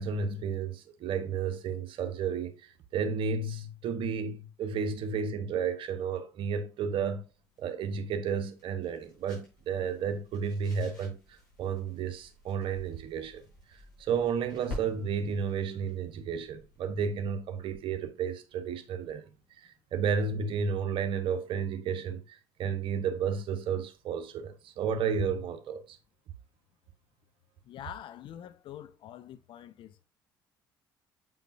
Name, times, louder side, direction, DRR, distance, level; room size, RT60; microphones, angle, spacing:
voice 1, 0.0-7.2 7.6-13.4 13.7-19.3 19.6-26.0, right 6 dB, 55° right, 0.9 m, -32 dB
sound 1, 7.3-18.0, left 2 dB, 85° left, 3.6 m, -50 dB
voice 2, 27.6-30.0, left 11 dB, 50° left, 0.6 m, -45 dB
7.3 x 5.4 x 2.5 m
hypercardioid pair, 55°, 11 cm